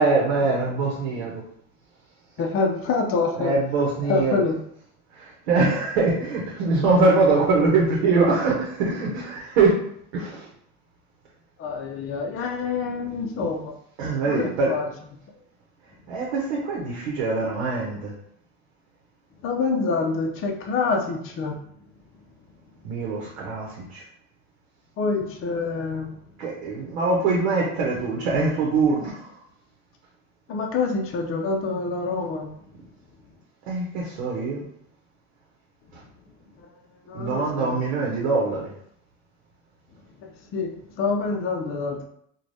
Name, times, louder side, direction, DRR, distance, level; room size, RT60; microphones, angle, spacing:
voice 1, 0.0-1.4 3.4-4.4 5.1-9.7 10.1-10.5 13.4-13.5 14.0-14.7 16.1-18.1 22.8-24.0 26.4-29.3 33.7-34.6 37.1-38.7, right 3 dB, 85° right, -3 dB, 0.8 m, -23 dB
voice 2, 2.4-3.5 4.0-4.6 11.6-13.8 14.3-14.8 19.4-21.6 25.0-26.2 30.5-32.5 37.1-37.8 40.2-42.0, left 4 dB, 40° left, 2 dB, 0.6 m, -26 dB
3.1 x 2.3 x 2.6 m, 0.68 s
supercardioid pair, 90°, 32 cm